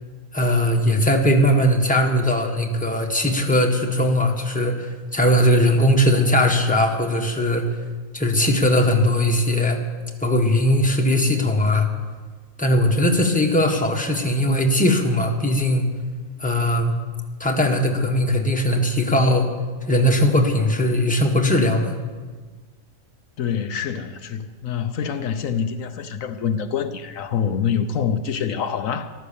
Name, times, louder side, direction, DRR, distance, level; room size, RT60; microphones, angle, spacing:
voice 1, 0.3-7.7 8.1-9.8 10.2-11.9 12.6-15.9 16.4-16.9 17.4-19.5 19.9-21.9, left 1 dB, 5° left, 1.5 m, -19 dB
voice 2, 23.4-29.1, left 7 dB, 75° left, 1.1 m, -26 dB
14.5 x 12.5 x 7.0 m
omnidirectional pair, 1.4 m